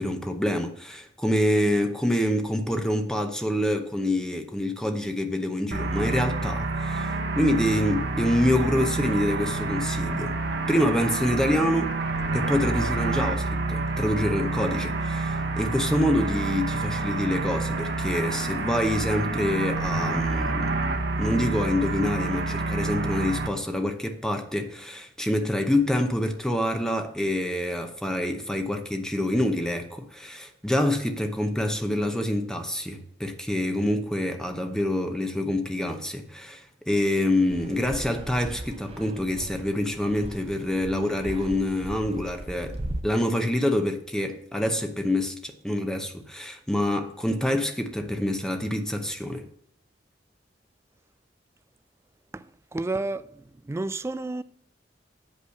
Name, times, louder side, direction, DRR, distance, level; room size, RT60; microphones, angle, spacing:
voice 1, 0.0-10.4 10.7-11.9 12.3-20.8 21.2-42.8 43.0-49.5, left 1 dB, 5° left, 0.7 m, -26 dB
sound 1, 5.7-23.5, right 3 dB, 65° right, 1.0 m, -28 dB
Fixed-wing aircraft airplane, 37.5-43.0, right 1 dB, 35° right, 0.7 m, -38 dB
voice 2, 52.3-54.4, right 2 dB, 15° right, 0.3 m, -31 dB
8.1 x 5.5 x 6.4 m
head